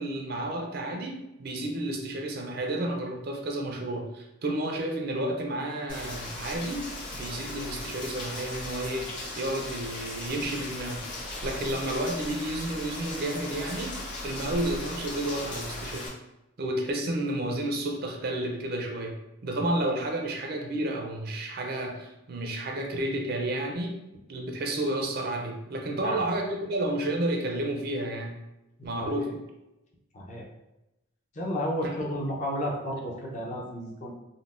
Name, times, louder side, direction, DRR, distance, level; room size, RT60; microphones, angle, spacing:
voice 1, 0.0-11.1 11.4-16.1 16.6-19.1 19.4-24.0 24.3-28.4 28.8-29.4 31.8-32.0, right 1 dB, 50° right, 2 dB, 0.4 m, -31 dB
Rain, 5.9-16.1, left 2 dB, 60° left, 1.2 m, -37 dB
voice 2, 25.9-26.2 28.8-29.3 30.1-30.5 31.3-34.1, equal, 35° left, -2 dB, 0.5 m, -33 dB
3.8 x 2.1 x 2.4 m, 0.93 s
head